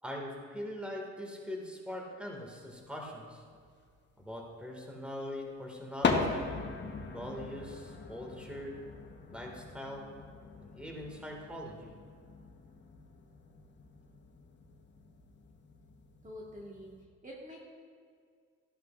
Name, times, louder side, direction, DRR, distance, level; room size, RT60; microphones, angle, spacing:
voice 1, 0.0-3.4 4.2-6.5 7.1-8.8 9.3-10.0 10.6-11.9, left 1 dB, 5° right, -1 dB, 2.0 m, -42 dB
sound 1, 2.6-2.7 3.5-4.4 5.5-5.6 5.7-17.0, left 4 dB, 35° left, 1.2 m, -39 dB
voice 2, 16.2-16.9 17.2-17.6, equal, 25° right, -3 dB, 1.6 m, -46 dB
14.0 x 11.0 x 2.5 m, 2.1 s
cardioid pair, 90°, 30 cm